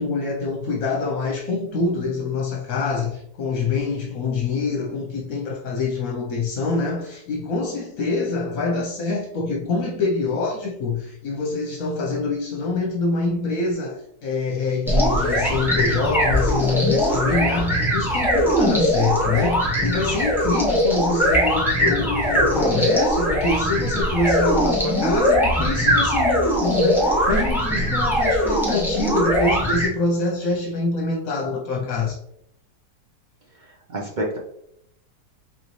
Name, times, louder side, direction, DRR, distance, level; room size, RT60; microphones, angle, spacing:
voice 1, 0.0-32.2, left 3 dB, 65° left, 1.1 m, -25 dB
sound 1, 14.9-29.9, equal, ahead, 1.0 m, -21 dB
voice 2, 33.6-34.4, right 1 dB, 65° right, 0.4 m, -29 dB
4.1 x 3.9 x 3.1 m
omnidirectional pair, 1.7 m